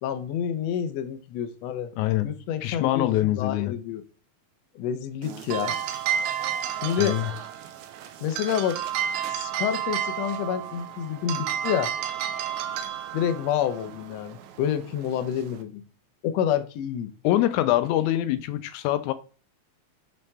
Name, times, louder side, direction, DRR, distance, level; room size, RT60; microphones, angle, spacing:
voice 1, 0.0-1.9 2.2-4.0 4.7-5.8 6.8-7.2 8.2-8.8 9.3-11.9 13.1-15.8 16.2-17.1, left 9 dB, 75° left, 1.8 m, -28 dB
voice 2, 2.0-2.3 2.6-3.8 7.0-7.3 17.2-19.1, left 14 dB, 90° left, 2.0 m, -24 dB
sound 1, 5.2-15.6, right 9 dB, 85° right, 2.1 m, -32 dB
6.6 x 5.6 x 3.5 m
omnidirectional pair, 3.3 m